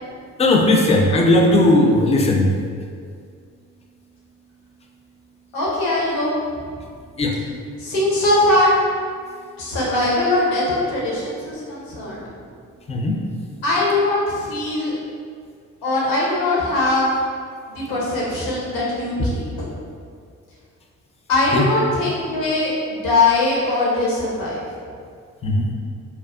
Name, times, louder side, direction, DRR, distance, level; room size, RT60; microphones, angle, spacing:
voice 1, 0.4-2.5 7.2-7.4 12.9-13.2 19.2-19.3 21.5-21.7 25.4-25.7, left 1 dB, 20° left, 1 dB, 0.3 m, -17 dB
voice 2, 5.5-6.3 7.8-8.7 9.6-12.2 13.6-15.0 15.8-17.1 17.7-19.7 21.3-24.5, left 2 dB, 70° left, -5 dB, 0.8 m, -21 dB
2.6 x 2.3 x 2.2 m, 2.2 s
hypercardioid pair, 40°, 37 cm